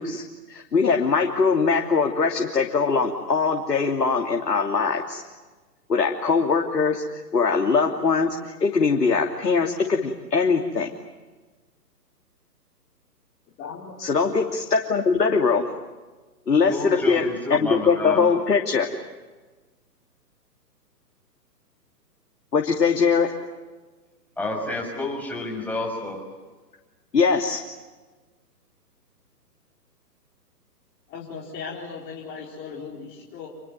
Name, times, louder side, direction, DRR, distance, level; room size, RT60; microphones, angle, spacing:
voice 1, 0.0-5.2 5.9-10.9 14.0-15.7 16.5-17.2 17.5-18.9 22.5-23.3 27.1-27.6, left 5 dB, 70° left, 2 dB, 3.0 m, -22 dB
voice 2, 13.5-13.9 31.1-33.5, left 5 dB, 20° left, -4 dB, 4.4 m, -37 dB
voice 3, 16.7-18.2 24.4-26.2, left 2 dB, 5° left, 0 dB, 5.9 m, -30 dB
28.0 x 22.0 x 9.3 m, 1.3 s
figure-of-eight pair, 135°, 49 cm